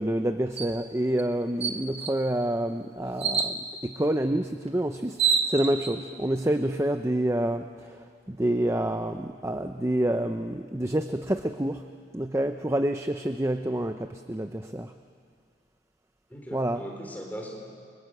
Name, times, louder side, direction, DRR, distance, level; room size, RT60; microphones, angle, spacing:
voice 1, 0.0-8.0 8.3-11.9 12.1-14.9 16.5-16.8, right 1 dB, 15° right, 7 dB, 0.7 m, -28 dB
sound 1, 0.6-0.8 1.2-1.3 1.6-2.2 3.2-3.6 4.7-4.8 5.0-5.9, right 6 dB, 30° right, 1.6 m, -26 dB
voice 2, 16.3-17.7, equal, 10° left, 0 dB, 4.2 m, -40 dB
30.0 x 24.0 x 7.9 m, 2.1 s
head